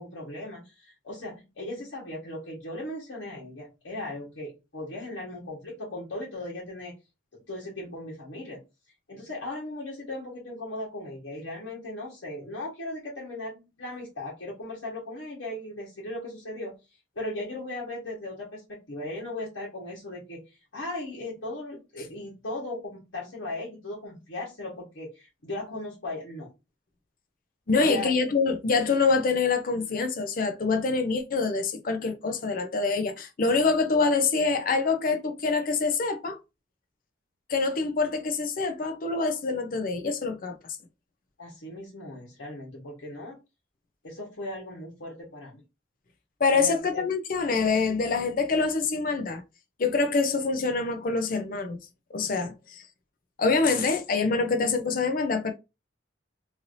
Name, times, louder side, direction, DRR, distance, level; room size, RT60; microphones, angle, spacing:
voice 1, 0.0-6.9 7.5-8.6 9.1-16.7 17.1-26.5 27.7-28.1 41.4-43.4 44.0-45.6 46.5-47.0, left 1 dB, 80° left, 1.2 m, -37 dB
voice 2, 27.7-36.4 37.5-40.6 46.4-49.4 49.8-51.8 52.1-52.8 53.4-55.5, left 4 dB, 45° left, 0.5 m, -25 dB
3.2 x 2.7 x 2.5 m
head